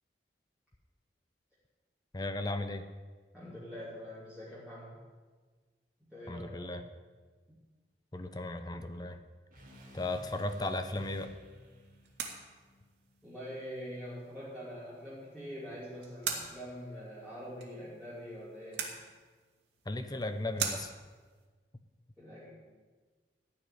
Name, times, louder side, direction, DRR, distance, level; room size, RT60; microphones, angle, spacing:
voice 1, 2.1-2.8 6.3-6.8 8.1-9.2 9.9-11.3 19.9-20.9, left 2 dB, 25° left, 9 dB, 0.7 m, -36 dB
voice 2, 3.3-4.9 6.0-6.8 7.5-7.6 13.2-18.9 22.2-22.5, equal, 5° right, -11 dB, 3.0 m, -44 dB
sound 1, 9.5-13.7, equal, 50° right, 3.1 m, -55 dB
sound 2, 9.7-21.5, right 6 dB, 90° right, 2.3 m, -44 dB
14.0 x 5.9 x 9.8 m, 1.4 s
head